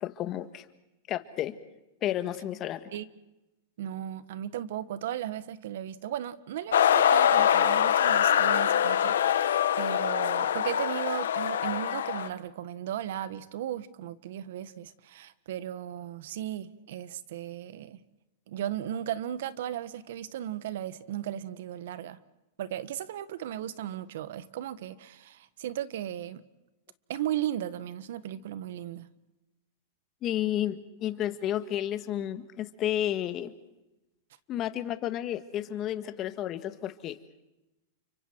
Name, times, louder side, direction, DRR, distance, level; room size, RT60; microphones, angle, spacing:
voice 1, 0.0-0.6 1.1-1.5 2.0-2.9 30.2-33.5 34.5-37.2, left 12 dB, 30° left, 11 dB, 1.6 m, -31 dB
voice 2, 3.8-18.0 18.5-22.2 22.6-26.4 27.1-29.1, right 11 dB, 70° right, 15 dB, 1.4 m, -36 dB
sound 1, 6.7-12.3, left 9 dB, 85° left, 1.5 m, -24 dB
30.0 x 25.5 x 4.7 m, 0.98 s
hypercardioid pair, 140°, 0 cm